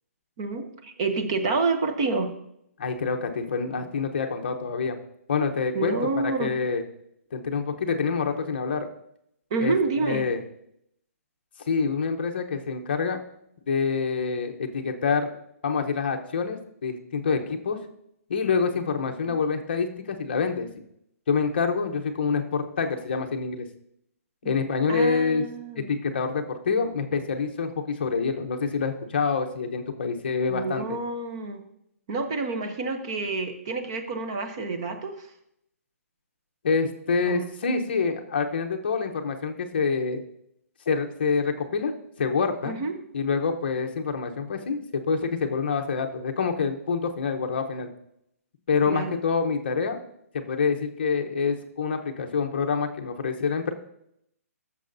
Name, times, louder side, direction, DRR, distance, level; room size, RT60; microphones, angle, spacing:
voice 1, 0.4-2.3 5.7-6.5 9.5-10.2 19.3-19.4 24.4-24.5 24.9-25.9 30.5-31.6 32.1-35.3 37.2-37.5 42.6-42.9 48.9-49.2, right 3 dB, 20° right, 6 dB, 0.6 m, -28 dB
voice 2, 2.8-5.0 5.3-6.8 7.3-8.9 9.6-9.7 10.0-10.4 11.7-13.2 13.7-15.3 15.6-17.8 18.3-20.7 21.3-23.7 24.4-25.4 25.9-31.0 36.6-40.2 40.9-41.9 42.2-42.8 43.1-47.9 48.7-50.0 50.3-53.7, left 5 dB, 40° left, 4 dB, 0.8 m, -26 dB
14.0 x 6.7 x 2.6 m, 0.75 s
hypercardioid pair, 175°, 8 cm